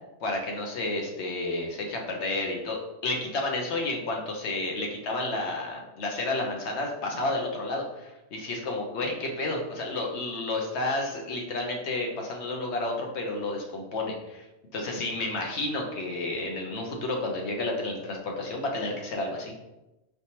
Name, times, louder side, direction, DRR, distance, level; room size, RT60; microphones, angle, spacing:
voice 1, 0.2-2.8 3.0-14.4 14.7-19.5, left 2 dB, 65° left, 0 dB, 1.1 m, -31 dB
4.4 x 3.4 x 2.8 m, 0.97 s
omnidirectional pair, 1.3 m